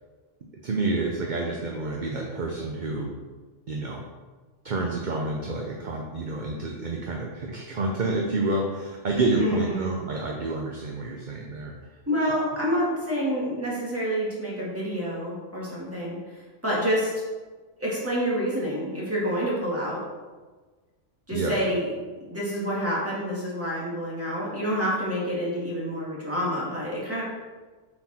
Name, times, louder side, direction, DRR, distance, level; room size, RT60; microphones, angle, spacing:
voice 1, 0.6-3.1 3.7-4.0 4.6-11.7 12.3-12.4 21.3-21.6, right 2 dB, 45° right, 0 dB, 0.8 m, -28 dB
voice 2, 9.4-10.0 12.1-16.2 16.6-17.1 17.8-20.0 21.3-21.9 22.3-27.2, equal, 10° right, -6 dB, 2.1 m, -28 dB
7.8 x 4.5 x 4.3 m, 1.3 s
omnidirectional pair, 1.2 m